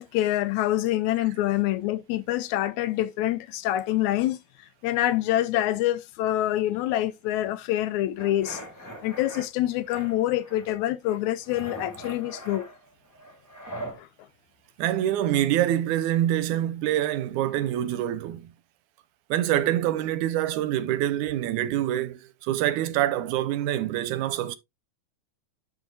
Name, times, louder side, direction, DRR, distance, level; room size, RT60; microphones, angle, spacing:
voice 1, 0.0-8.6 9.0-12.7 14.0-14.1, left 14 dB, 80° left, 1.9 m, -26 dB
sound 1, 8.2-9.5 9.9-10.8 11.0-14.0, right 1 dB, 5° left, 1.9 m, -41 dB
voice 2, 14.8-18.5 19.3-24.6, right 12 dB, 90° right, 2.2 m, -25 dB
12.0 x 4.7 x 2.5 m
omnidirectional pair, 3.4 m